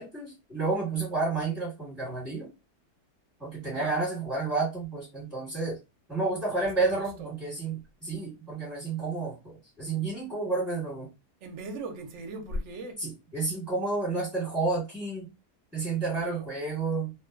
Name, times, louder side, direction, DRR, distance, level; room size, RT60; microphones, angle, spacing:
voice 1, 0.0-2.5 3.4-5.8 6.1-11.1 13.0-15.3 15.7-17.1, right 3 dB, ahead, 1.0 m, -30 dB
voice 2, 6.5-7.3 11.4-13.0 16.1-16.4, right 2 dB, 60° right, 0.8 m, -38 dB
2.8 x 2.3 x 2.4 m
omnidirectional pair, 1.8 m